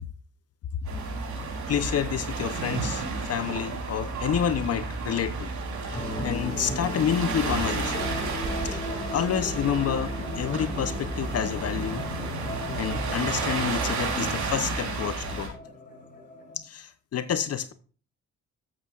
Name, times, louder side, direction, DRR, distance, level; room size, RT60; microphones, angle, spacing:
sound 1, 0.8-15.5, right 4 dB, 70° right, 3.8 m, -32 dB
voice 1, 1.7-5.5 5.9-8.1 8.6-12.0 12.8-15.5 16.5-17.7, left 9 dB, 55° left, 0.8 m, -29 dB
sound 2, 5.9-16.5, left 2 dB, 30° left, 2.4 m, -36 dB
13.5 x 8.2 x 2.5 m
cardioid pair, 90°, 30 cm